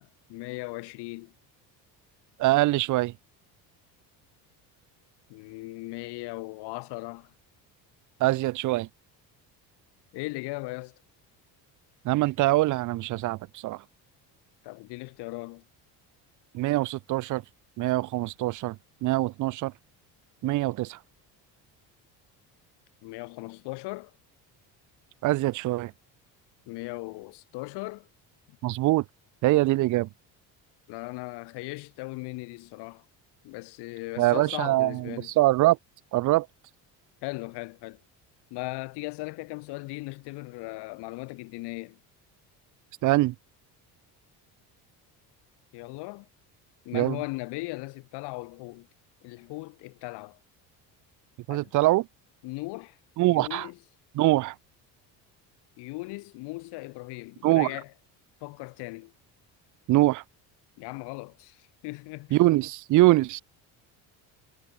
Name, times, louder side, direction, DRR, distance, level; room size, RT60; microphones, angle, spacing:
voice 1, 0.0-1.3 5.3-7.3 10.1-11.0 14.6-15.6 23.0-24.1 26.7-28.1 30.9-33.0 33.4-35.3 37.2-38.0 38.5-42.0 45.7-46.3 46.8-48.9 49.2-50.4 51.5-51.7 52.4-53.0 53.2-53.8 55.8-57.9 58.4-59.1 60.8-62.4, left 23 dB, 75° left, 1.1 m, -38 dB
voice 2, 2.4-3.1 8.2-8.9 12.0-13.8 16.5-17.4 17.8-18.8 19.0-19.7 20.4-21.0 25.2-25.9 28.6-29.0 29.4-30.1 34.2-35.8 36.1-36.5 43.0-43.3 46.9-47.2 51.5-52.1 53.2-53.7 54.2-54.5 57.4-57.7 59.9-60.2 62.3-63.4, right 18 dB, 50° right, 0.5 m, -23 dB
cardioid pair, 130°, 40 cm